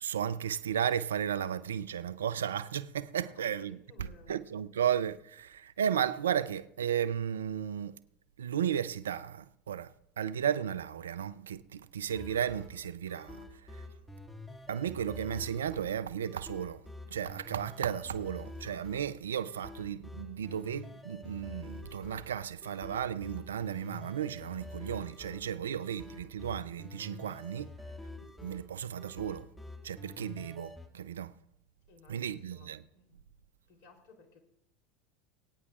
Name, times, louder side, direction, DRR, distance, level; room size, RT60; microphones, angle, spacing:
voice 1, 0.0-3.8 4.3-8.0 8.4-9.9 10.2-13.4 14.7-16.8 17.1-27.7 28.4-29.5 29.8-31.3 32.1-32.8, right 9 dB, 85° right, 0.5 m, -34 dB
voice 2, 3.1-4.4 31.9-33.2 33.7-34.4, left 4 dB, 60° left, 3.4 m, -59 dB
sound 1, 12.1-30.9, left 2 dB, 10° left, 2.1 m, -48 dB
23.0 x 9.6 x 2.5 m
hypercardioid pair, 85°, 0 cm